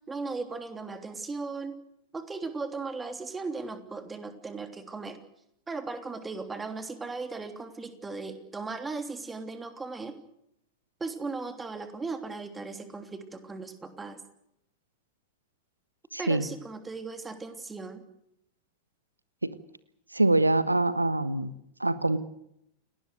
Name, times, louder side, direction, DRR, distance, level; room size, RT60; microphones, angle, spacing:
voice 1, 0.1-1.8 2.1-5.2 5.7-10.2 11.0-14.2 16.2-18.0, right 3 dB, 15° right, 7 dB, 3.2 m, -37 dB
voice 2, 16.1-16.5 19.4-19.5 20.1-21.5 21.8-22.2, right 2 dB, 85° right, 15 dB, 1.3 m, -24 dB
29.5 x 19.0 x 6.6 m, 0.78 s
figure-of-eight pair, 90°, 0 cm